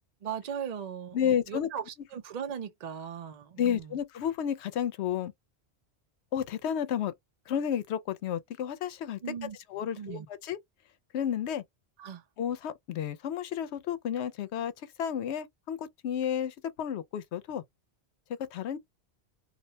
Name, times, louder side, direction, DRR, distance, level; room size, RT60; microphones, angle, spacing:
voice 1, 0.2-4.0 9.2-9.6 9.9-10.3 12.0-12.3, right 8 dB, 50° right, 0.6 m, -38 dB
voice 2, 1.1-1.7 3.6-5.3 6.3-7.1 7.5-9.2 9.7-10.6 11.1-11.6 12.4-14.7 15.0-17.6 18.5-18.8, left 9 dB, 90° left, 0.9 m, -31 dB
2.4 x 2.1 x 2.6 m
omnidirectional pair, 1.1 m